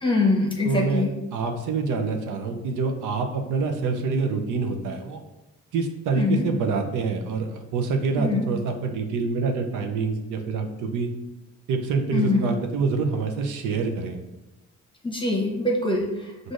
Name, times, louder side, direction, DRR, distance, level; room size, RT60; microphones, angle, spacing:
voice 1, 0.0-1.1 6.1-6.5 8.2-8.4 12.1-12.5 15.0-16.5, left 2 dB, 15° left, 0 dB, 0.9 m, -24 dB
voice 2, 0.6-5.2 5.7-11.1 11.7-14.2, right 4 dB, 80° right, 4 dB, 0.6 m, -26 dB
6.1 x 2.5 x 2.5 m, 0.99 s
cardioid pair, 90°, 30 cm